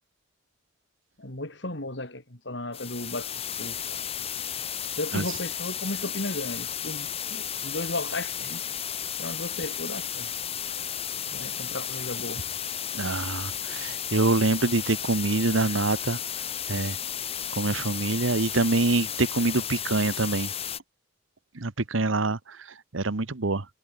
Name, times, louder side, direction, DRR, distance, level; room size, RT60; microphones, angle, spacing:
voice 1, 1.2-4.0 5.0-8.6 9.2-10.3 11.3-12.4, left 2 dB, 65° left, 3.6 m, -35 dB
sound 1, 2.7-20.8, left 9 dB, 30° left, 3.3 m, -33 dB
voice 2, 12.9-16.2 16.7-17.0 17.5-20.5 21.5-23.7, right 2 dB, 85° right, 1.2 m, -25 dB
head